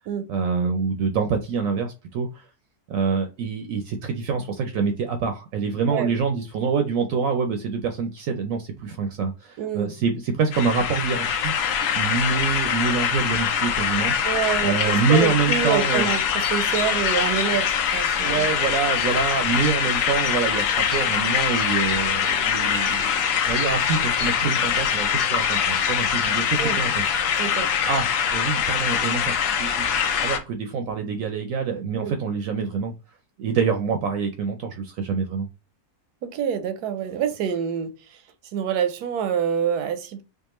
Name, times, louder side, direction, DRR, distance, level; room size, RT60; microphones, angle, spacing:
voice 1, 0.3-2.5 2.9-14.1 14.6-16.1 18.2-23.2 23.5-27.1 27.9-28.1 28.3-32.9 33.4-35.5, right 5 dB, 70° right, 0.9 m, -26 dB
voice 2, 9.6-9.9 14.2-16.2 16.5-18.4 26.6-26.8 27.4-27.7 32.0-32.1 36.2-37.9 38.5-40.2, right 8 dB, 85° right, 1.1 m, -26 dB
sound 1, 10.5-30.4, left 8 dB, 80° left, 1.2 m, -23 dB
4.6 x 2.4 x 2.9 m
omnidirectional pair, 1.7 m